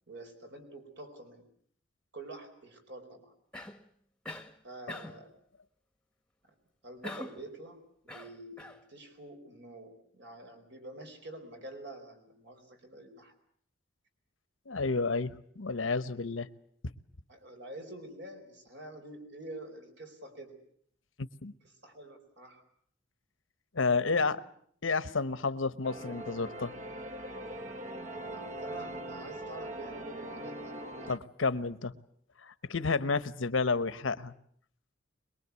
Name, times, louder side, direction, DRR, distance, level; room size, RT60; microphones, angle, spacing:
voice 1, 0.1-1.4 2.1-3.3 4.6-5.3 6.8-13.3 17.3-20.6 21.8-22.6 24.0-24.4 28.3-31.2, right 1 dB, 65° right, 5 dB, 4.6 m, -47 dB
Cough, 3.5-3.9 4.3-4.6 4.9-5.3 7.0-7.5 8.1-8.8, left 1 dB, 5° left, 1.3 m, -43 dB
voice 2, 14.7-16.5 21.2-21.5 23.7-24.4 24.8-26.7 31.1-31.9 32.4-34.3, left 4 dB, 85° left, 14 dB, 1.1 m, -31 dB
sound 1, 25.8-31.2, right 1 dB, 40° right, 1.3 m, -41 dB
22.5 x 22.5 x 8.3 m, 0.63 s
head